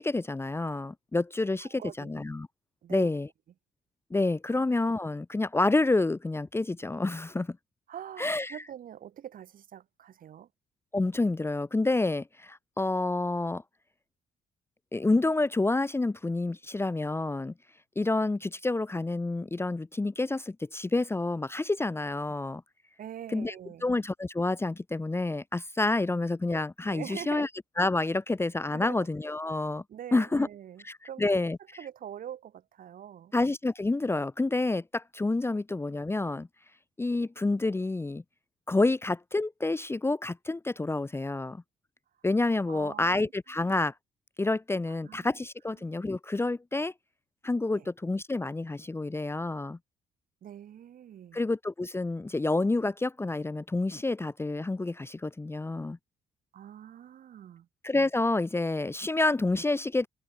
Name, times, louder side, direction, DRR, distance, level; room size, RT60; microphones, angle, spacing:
voice 1, 0.0-2.5 2.9-3.3 4.1-7.6 8.2-8.6 10.9-13.6 14.9-17.5 18.0-22.6 23.3-23.5 23.8-27.5 27.8-29.8 30.1-30.5 30.8-31.6 33.3-36.5 37.0-38.2 38.7-41.6 42.2-43.9 44.4-46.9 47.4-49.8 51.3-56.0 57.8-60.1, left 2 dB, 15° left, 0.7 m, -28 dB
voice 2, 1.6-2.1 2.8-3.1 4.5-4.6 7.9-10.5 23.0-23.9 26.8-27.5 28.7-29.1 29.9-31.4 31.8-33.3 42.7-43.3 44.9-45.3 47.7-47.9 50.4-51.4 56.5-57.7, right 10 dB, 60° right, 4.5 m, -44 dB
supercardioid pair, 65°, 16 cm